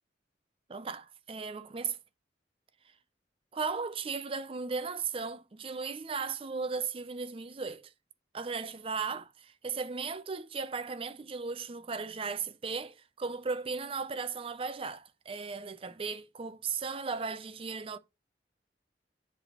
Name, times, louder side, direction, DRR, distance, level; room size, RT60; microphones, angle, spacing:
voice 1, 0.7-2.0 3.5-7.9 8.3-18.0, right 5 dB, 30° right, 0.5 m, -36 dB
7.4 x 3.4 x 5.6 m
head